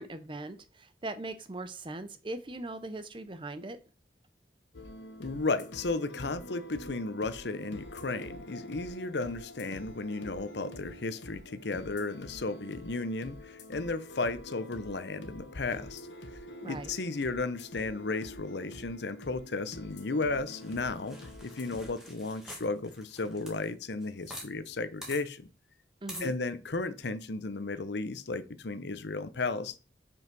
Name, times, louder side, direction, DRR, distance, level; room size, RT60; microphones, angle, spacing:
voice 1, 0.0-3.8 16.6-16.9 26.0-26.4, right 2 dB, 25° right, 0.6 m, -40 dB
sound 1, 4.7-21.9, left 1 dB, 85° left, 1.3 m, -46 dB
voice 2, 5.2-16.1 16.6-21.2 21.4-25.5 26.2-29.8, left 3 dB, 70° left, 0.8 m, -34 dB
sound 2, 20.5-24.5 24.7-24.8 25.0-25.2 26.1-26.3, equal, 5° right, 1.8 m, -46 dB
5.5 x 5.5 x 6.1 m
head